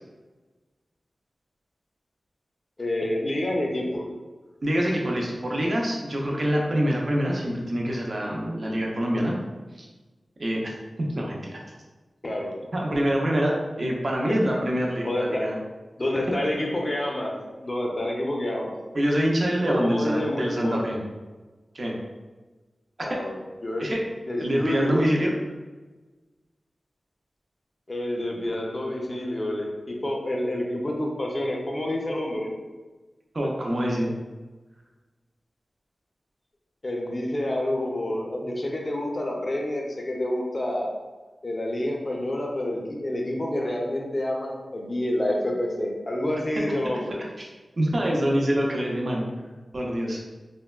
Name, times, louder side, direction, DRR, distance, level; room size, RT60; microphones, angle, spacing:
voice 1, 2.8-4.1 12.2-12.5 15.0-15.4 16.0-17.3 17.6-18.8 19.7-20.9 23.0-24.0 24.3-25.1 27.9-32.5 36.8-40.9 41.4-47.2, left 1 dB, 35° left, -1 dB, 0.5 m, -28 dB
voice 2, 4.6-9.4 9.8-9.9 10.4-10.7 11.2-11.6 12.7-15.6 18.9-21.0 21.7-22.0 23.0-23.2 23.8-24.0 24.4-25.3 33.3-34.1 47.4-47.5 47.8-49.2 49.7-50.2, equal, 50° right, -2 dB, 0.5 m, -25 dB
3.3 x 2.1 x 2.2 m, 1.2 s
wide cardioid pair, 95°, 0 cm